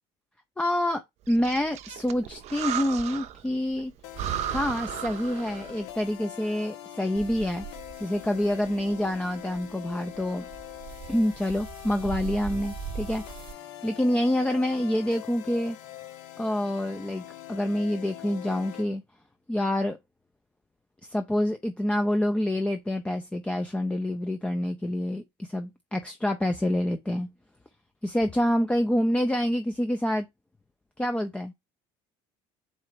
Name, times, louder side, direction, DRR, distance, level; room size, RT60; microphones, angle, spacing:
voice 1, 0.6-1.0 1.3-3.9 4.4-7.7 8.0-10.5 11.1-13.2 13.8-15.8 16.4-19.0 19.5-20.0 21.1-27.3 28.0-30.3 31.0-31.5, left 1 dB, 10° left, 0.4 m, -27 dB
Breathing, 1.3-3.5 3.8-3.9 4.1-5.8, right 10 dB, 55° right, 0.5 m, -34 dB
sound 1, 4.0-18.9, left 13 dB, 80° left, 0.6 m, -43 dB
sound 2, 7.2-13.5, right 7 dB, 40° right, 0.9 m, -41 dB
4.2 x 2.4 x 4.5 m
supercardioid pair, 90°, 13 cm